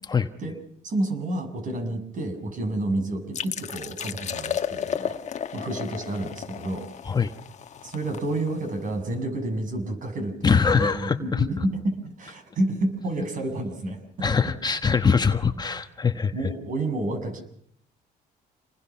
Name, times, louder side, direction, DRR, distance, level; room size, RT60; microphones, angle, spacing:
voice 1, 0.8-5.2 5.5-6.8 7.8-14.0 16.3-17.4, right 1 dB, 50° right, 6 dB, 6.8 m, -29 dB
sound 1, 3.3-8.9, left 8 dB, 45° left, 1.3 m, -33 dB
voice 2, 10.4-11.4 14.2-16.3, left 5 dB, 25° left, 7 dB, 1.3 m, -22 dB
28.0 x 20.5 x 5.9 m, 0.67 s
cardioid pair, 110°, 17 cm